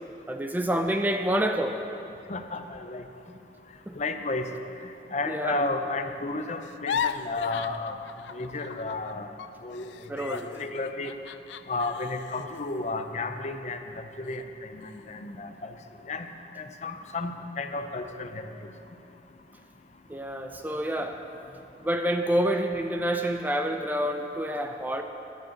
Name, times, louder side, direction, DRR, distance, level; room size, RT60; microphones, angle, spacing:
voice 1, 0.3-1.8 3.9-4.0 5.3-5.7 10.1-10.5 20.1-21.2 21.8-25.0, right 1 dB, 10° right, 5 dB, 0.4 m, -28 dB
voice 2, 2.3-3.0 3.9-4.5 5.1-7.9 8.3-9.3 9.6-9.9 10.4-11.1 11.7-15.7 16.1-16.3 16.6-18.4, left 3 dB, 40° left, 7 dB, 0.6 m, -32 dB
sound 1, 6.6-9.1 9.4-13.8 14.3-14.4 14.8-15.3, left 7 dB, 85° left, 0.4 m, -37 dB
11.0 x 8.0 x 7.7 m, 2.8 s
head